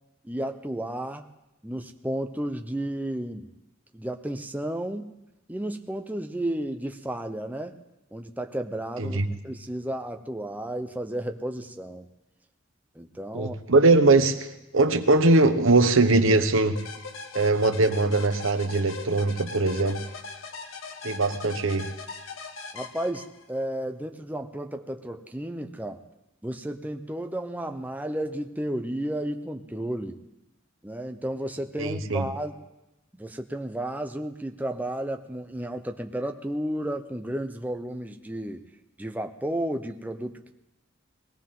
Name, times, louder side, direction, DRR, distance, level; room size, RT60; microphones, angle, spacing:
voice 1, 0.2-1.3 1.6-3.5 3.9-5.1 5.5-7.8 8.1-9.2 9.4-12.1 12.9-13.6 22.7-26.0 26.4-30.2 30.8-32.7 33.1-38.7 39.0-40.5, right 1 dB, 10° right, 5 dB, 0.7 m, -32 dB
voice 2, 13.3-14.5 14.7-16.8 17.3-20.0 21.0-21.9 31.8-32.3, right 2 dB, 80° right, 8 dB, 1.1 m, -21 dB
sound 1, 16.8-23.6, left 4 dB, 85° left, 1.2 m, -40 dB
21.0 x 17.0 x 3.8 m, 0.96 s
head